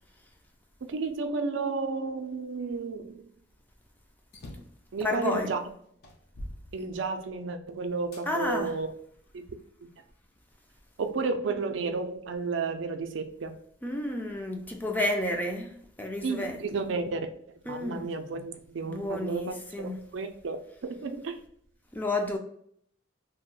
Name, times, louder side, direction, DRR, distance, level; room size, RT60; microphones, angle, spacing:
voice 1, 0.8-3.2 4.9-5.7 6.7-8.9 9.3-9.4 11.0-13.5 16.2-17.3 17.6-21.4, right 4 dB, 75° right, 0.4 m, -32 dB
sound 1, 4.3-4.8 5.5-5.6 6.0-7.4 8.1-8.3 9.0-10.0, left 1 dB, 55° left, 0.6 m, -45 dB
voice 2, 5.0-5.5 8.3-8.8 13.8-16.6 17.7-18.1 18.9-20.1 21.9-22.4, left 1 dB, 10° left, 0.4 m, -31 dB
2.8 x 2.1 x 3.7 m
head